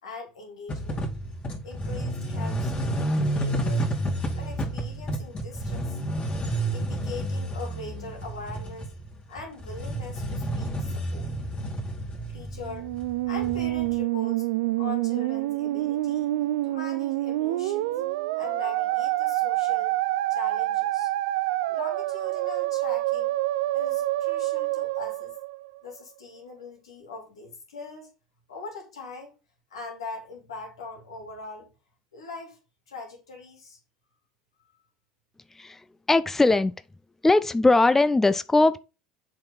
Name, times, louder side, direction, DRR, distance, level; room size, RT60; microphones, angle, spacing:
voice 1, 0.0-1.1 1.6-3.9 4.3-6.0 6.7-8.9 9.3-11.3 12.3-12.9 13.2-14.5 14.8-16.3 16.6-17.9 18.4-20.0 20.3-21.1 21.7-23.4 23.7-25.3 25.8-28.1 28.5-29.3 29.7-31.7 32.1-32.6 32.9-33.8, left 3 dB, 90° left, 3.3 m, -41 dB
sound 1, 0.7-14.0, right 1 dB, 35° left, 2.6 m, -30 dB
Musical instrument, 12.6-26.0, right 16 dB, 75° right, 0.5 m, -27 dB
voice 2, 36.1-36.7 37.2-38.8, left 2 dB, 10° left, 0.5 m, -20 dB
7.4 x 4.7 x 3.9 m
hypercardioid pair, 80°, 3 cm